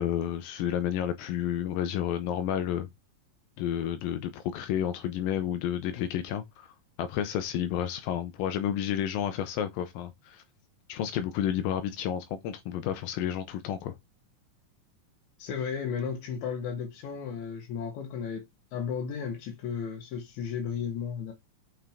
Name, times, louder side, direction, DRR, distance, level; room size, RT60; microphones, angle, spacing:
voice 1, 0.0-2.9 3.6-6.7 7.0-10.4 10.9-14.0, left 10 dB, 85° left, 2.3 m, -31 dB
voice 2, 15.4-21.3, left 7 dB, 65° left, 2.2 m, -34 dB
5.9 x 5.8 x 3.4 m
omnidirectional pair, 4.0 m